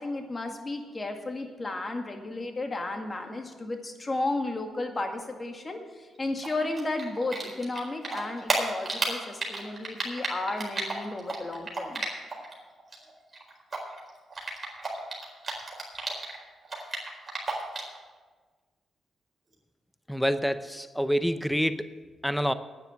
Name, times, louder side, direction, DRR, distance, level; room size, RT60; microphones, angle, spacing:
voice 1, 0.0-12.0, left 2 dB, 30° left, 4 dB, 2.0 m, -33 dB
Typing, 6.4-12.5 12.8-16.4 16.6-18.0, right 3 dB, 35° right, 4.4 m, -32 dB
voice 2, 20.1-21.9 22.2-22.5, equal, ahead, 12 dB, 0.7 m, -27 dB
9.8 x 9.4 x 7.5 m, 1.4 s
supercardioid pair, 60°, 0 cm